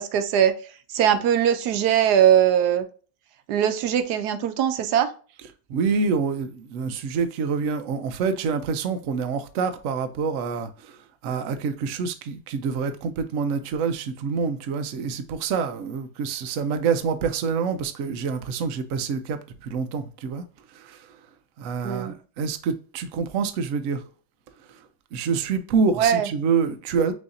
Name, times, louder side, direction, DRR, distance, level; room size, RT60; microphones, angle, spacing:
voice 1, 0.0-2.8 3.5-5.1 21.8-22.1 26.0-26.3, right 9 dB, 80° right, 1.2 m, -21 dB
voice 2, 5.7-21.2 21.6-24.0 24.7-24.8 25.1-27.1, right 5 dB, 65° right, 0.9 m, -27 dB
6.3 x 2.7 x 2.6 m
omnidirectional pair, 1.7 m